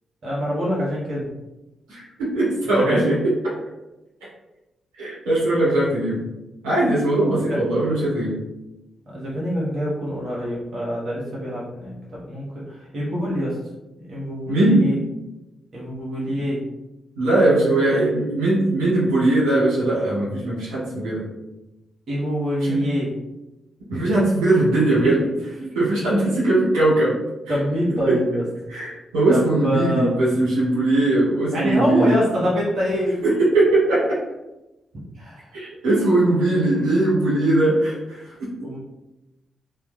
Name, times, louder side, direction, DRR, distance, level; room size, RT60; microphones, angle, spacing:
voice 1, 0.2-1.3 2.6-3.1 9.1-13.6 14.1-15.0 15.7-16.6 17.4-18.0 22.1-23.1 23.9-24.1 25.0-25.1 27.5-28.4 29.3-30.1 31.5-33.2 35.1-35.5 38.6-38.8, equal, 60° right, -7 dB, 0.7 m, -25 dB
voice 2, 1.9-3.3 5.0-6.2 6.6-8.4 14.5-14.8 16.3-16.4 17.2-21.2 22.7-22.8 23.9-25.2 25.7-27.1 27.5-27.6 28.1-28.2 28.7-32.1 33.2-34.2 35.5-38.2, right 2 dB, 90° right, -9 dB, 1.1 m, -20 dB
2.2 x 2.2 x 3.0 m, 0.98 s
hypercardioid pair, 40°, 0 cm